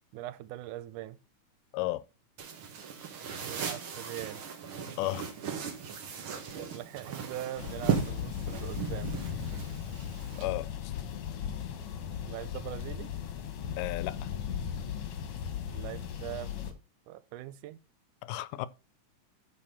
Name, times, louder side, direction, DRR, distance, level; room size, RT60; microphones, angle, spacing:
voice 1, 0.1-1.2 3.4-4.4 6.7-9.1 12.3-13.1 15.7-16.5 17.1-17.8, right 13 dB, 85° right, 2.1 m, -41 dB
sound 1, 2.4-10.4, right 7 dB, 50° right, 1.9 m, -37 dB
voice 2, 5.0-5.3 10.4-10.7 13.8-14.3 18.2-18.7, left 17 dB, 85° left, 2.2 m, -33 dB
sound 2, 7.6-16.7, left 8 dB, 60° left, 1.7 m, -37 dB
8.7 x 4.6 x 5.7 m
omnidirectional pair, 3.7 m